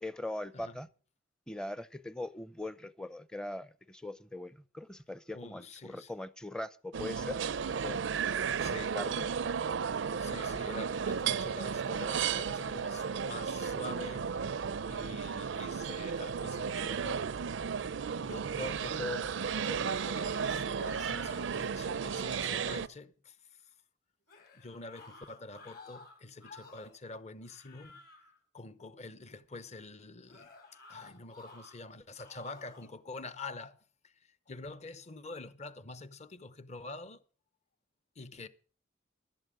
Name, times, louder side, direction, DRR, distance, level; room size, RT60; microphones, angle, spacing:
voice 1, 0.0-0.9 1.5-7.4 7.7-8.0 8.9-9.3, left 1 dB, 5° left, 0.6 m, -41 dB
voice 2, 5.3-6.1 8.6-9.0 10.2-17.3 18.2-23.6 24.5-28.0 28.5-30.5 30.9-33.8 34.0-37.2 38.2-38.5, left 2 dB, 35° left, 0.9 m, -46 dB
sound 1, 6.9-22.9, right 6 dB, 75° right, 0.5 m, -34 dB
sound 2, 19.2-21.7 22.0-22.9 24.3-27.0 27.4-28.4 30.3-31.8 32.2-32.9, left 3 dB, 55° left, 5.2 m, -54 dB
16.0 x 11.5 x 3.7 m
head